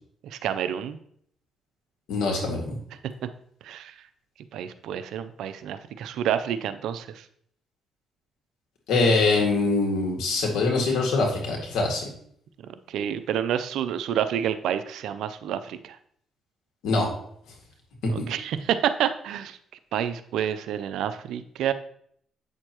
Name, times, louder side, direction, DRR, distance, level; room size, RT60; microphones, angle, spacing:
voice 1, 0.3-1.0 3.6-3.9 4.5-7.2 12.9-16.0 18.1-19.6 19.9-21.7, right 9 dB, 80° right, 11 dB, 0.5 m, -28 dB
voice 2, 2.1-2.8 8.9-12.1 16.8-17.1, left 3 dB, 90° left, 1 dB, 2.0 m, -23 dB
8.7 x 6.6 x 3.0 m, 0.66 s
cardioid pair, 90°, 0 cm